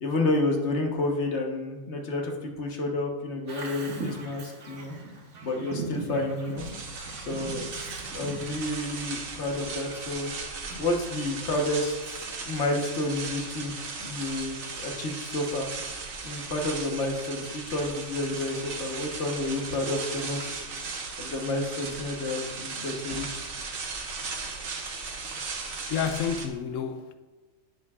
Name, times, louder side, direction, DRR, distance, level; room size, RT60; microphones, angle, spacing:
voice 1, 0.0-4.9 5.4-6.6 7.2-7.7 8.1-10.3 10.7-11.9 12.4-15.7 16.2-20.5 21.2-23.4, left 2 dB, 55° left, 1.5 m, -30 dB
Bird vocalization bird call bird song, 3.5-10.8, right 2 dB, 60° right, 1.5 m, -40 dB
sound 1, 6.6-26.5, right 4 dB, 85° right, 1.5 m, -37 dB
voice 2, 25.5-27.1, left 7 dB, 75° left, 1.0 m, -31 dB
11.0 x 7.8 x 2.4 m
omnidirectional pair, 1.4 m